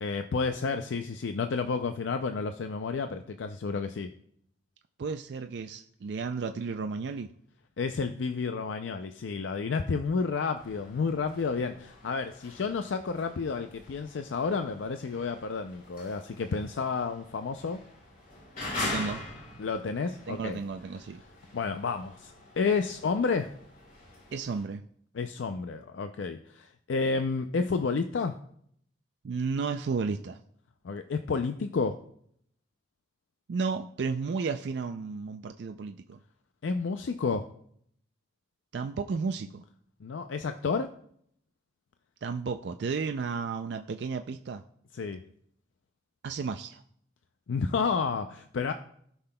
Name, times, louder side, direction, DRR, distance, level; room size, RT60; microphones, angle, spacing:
voice 1, 0.0-4.1 7.8-17.8 19.6-20.6 21.5-23.5 25.1-28.4 30.8-32.0 36.6-37.5 40.0-40.9 44.9-45.2 47.5-48.7, left 4 dB, 80° left, 8 dB, 0.4 m, -30 dB
voice 2, 5.0-7.3 18.8-19.2 20.3-21.2 24.3-24.8 29.2-30.4 33.5-36.2 38.7-39.6 42.2-44.6 46.2-46.8, right 5 dB, 65° right, 6 dB, 0.4 m, -33 dB
sound 1, 10.6-24.6, left 2 dB, 45° left, 2.6 m, -43 dB
17.0 x 5.8 x 2.2 m, 0.67 s
head